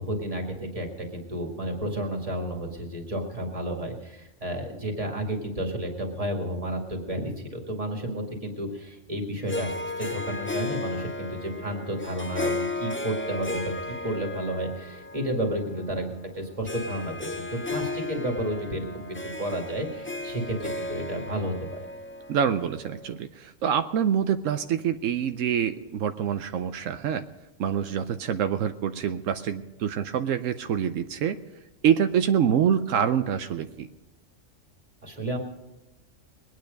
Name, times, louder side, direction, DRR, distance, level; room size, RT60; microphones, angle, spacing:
voice 1, 0.0-21.8 35.0-35.4, equal, 30° right, 2 dB, 2.2 m, -32 dB
Harp, 9.5-23.1, left 2 dB, 20° left, 0.4 m, -35 dB
voice 2, 22.3-27.2 27.6-31.4 31.8-33.9, right 8 dB, 85° right, 9 dB, 1.0 m, -26 dB
21.5 x 9.3 x 5.2 m, 1.0 s
omnidirectional pair, 1.3 m